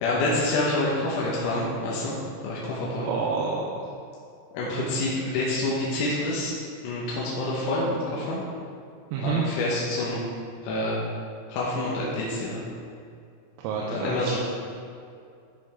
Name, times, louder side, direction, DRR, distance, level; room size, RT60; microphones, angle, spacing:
voice 1, 0.0-2.2 2.4-3.1 4.5-6.5 6.8-8.4 9.2-10.2 10.6-11.0 11.5-12.6 13.8-14.4, left 2 dB, 90° left, -5 dB, 3.9 m, -27 dB
voice 2, 3.0-3.9 5.1-5.2 9.1-9.4 13.6-14.4, right 5 dB, 85° right, -3 dB, 3.3 m, -29 dB
14.0 x 5.1 x 3.5 m, 2.4 s
omnidirectional pair, 6.0 m